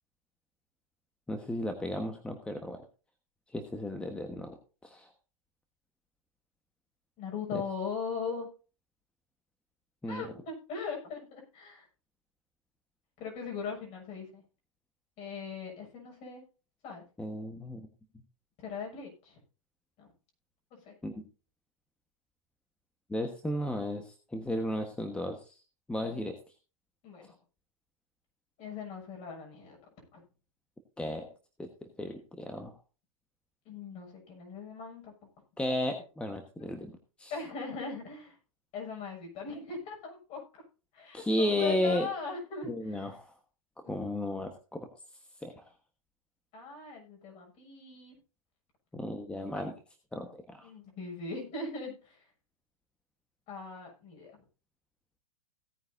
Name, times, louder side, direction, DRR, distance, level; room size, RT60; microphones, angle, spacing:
voice 1, 1.3-2.8 3.5-4.5 4.8-5.1 7.5-7.6 10.0-10.3 17.2-17.9 21.0-21.1 23.1-25.6 25.9-26.4 31.0-31.3 31.6-31.7 32.0-32.7 35.6-36.9 37.2-37.3 41.1-42.1 42.6-43.3 43.8-44.9 45.4-45.6 48.9-49.7 50.1-50.7, left 1 dB, 5° left, 5 dB, 1.3 m, -34 dB
voice 2, 7.2-8.5 10.1-11.9 13.2-14.4 15.2-16.4 16.8-17.0 18.6-19.4 20.0-20.1 20.7-20.9 27.0-27.3 28.6-29.8 30.1-30.2 33.7-35.1 37.3-38.4 38.7-40.6 40.9-43.1 43.8-43.9 46.5-48.1 49.6-49.7 50.6-52.2 53.5-54.3, left 4 dB, 40° left, 1 dB, 6.9 m, -40 dB
17.5 x 9.4 x 2.7 m, 0.34 s
hypercardioid pair, 115°, 17 cm